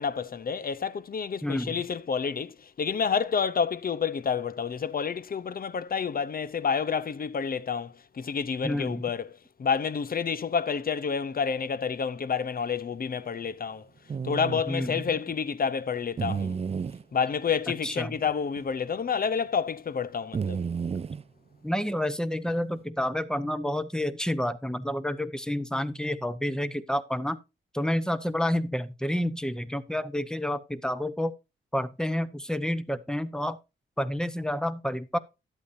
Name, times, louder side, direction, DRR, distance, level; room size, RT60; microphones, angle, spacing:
voice 1, 0.0-9.3 9.6-13.9 14.2-16.6 17.1-20.6, left 6 dB, 45° left, 0.6 m, -29 dB
voice 2, 1.4-1.7 8.6-9.0 14.7-15.1 17.8-18.1 21.6-27.4 27.7-31.3 31.7-33.6 34.0-35.2, left 1 dB, 5° left, 0.8 m, -29 dB
sound 1, 14.1-14.6 16.2-17.0 18.2-18.3 18.6-18.7 20.3-21.2 22.5-22.8, right 6 dB, 30° right, 0.4 m, -31 dB
11.5 x 8.3 x 2.6 m
cardioid pair, 65°, 21 cm